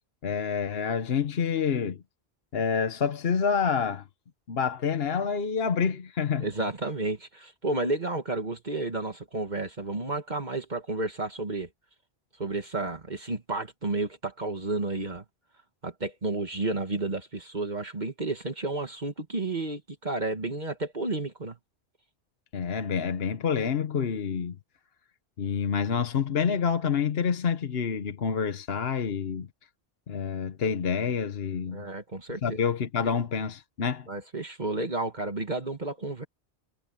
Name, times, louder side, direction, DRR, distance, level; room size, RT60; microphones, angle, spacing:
voice 1, 0.2-2.0 2.5-4.0 4.5-6.5 22.5-24.6 25.4-29.5 30.1-31.8 32.4-34.1, left 6 dB, 65° left, 1.2 m, -27 dB
voice 2, 6.4-11.7 12.4-15.2 15.8-21.6 31.7-32.7 34.1-36.3, right 2 dB, 45° right, 2.0 m, -31 dB
omnidirectional pair, 1.1 m